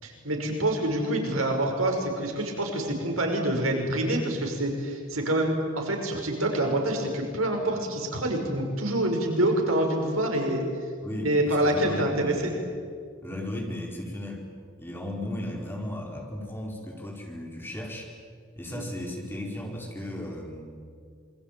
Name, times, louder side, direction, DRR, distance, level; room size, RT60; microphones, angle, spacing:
voice 1, 0.0-10.6 11.2-12.5 18.7-18.8, right 1 dB, 85° right, 2 dB, 5.9 m, -26 dB
voice 2, 11.0-12.5 13.2-14.5 14.8-18.1 18.6-20.6, left 1 dB, 10° left, 0 dB, 4.7 m, -35 dB
27.0 x 23.0 x 9.0 m, 2.2 s
head